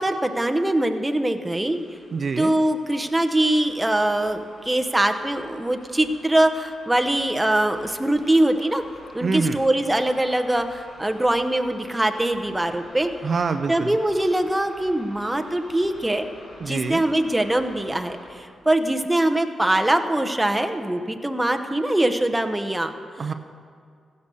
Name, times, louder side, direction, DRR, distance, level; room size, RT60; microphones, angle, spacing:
voice 1, 0.0-1.8 2.4-8.8 9.1-13.1 13.7-16.3 16.6-22.9, right 1 dB, 15° right, 6 dB, 0.9 m, -22 dB
sound 1, 1.5-18.6, left 1 dB, 75° left, 3.5 m, -48 dB
voice 2, 2.1-2.5 9.2-9.6 13.2-13.9 16.6-17.0 23.2-23.3, right 5 dB, 55° right, 8 dB, 0.5 m, -25 dB
15.5 x 5.4 x 7.0 m, 2.2 s
supercardioid pair, 55°, 0 cm